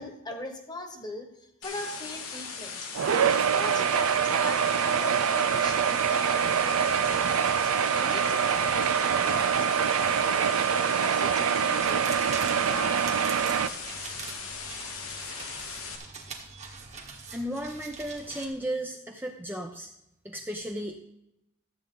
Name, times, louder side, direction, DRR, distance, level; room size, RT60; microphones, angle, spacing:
voice 1, 0.0-2.9 3.3-7.2 7.6-10.6 11.0-13.6, left 2 dB, 20° left, 5 dB, 1.3 m, -41 dB
sound 1, 1.6-16.0, left 5 dB, 85° left, 1.6 m, -39 dB
sound 2, 3.0-13.7, right 7 dB, 85° right, 0.5 m, -25 dB
sound 3, 11.8-18.5, right 4 dB, 35° right, 1.5 m, -43 dB
voice 2, 17.3-19.9 20.2-21.0, right 1 dB, 10° right, 1 dB, 0.7 m, -34 dB
13.0 x 8.1 x 3.9 m, 0.83 s
head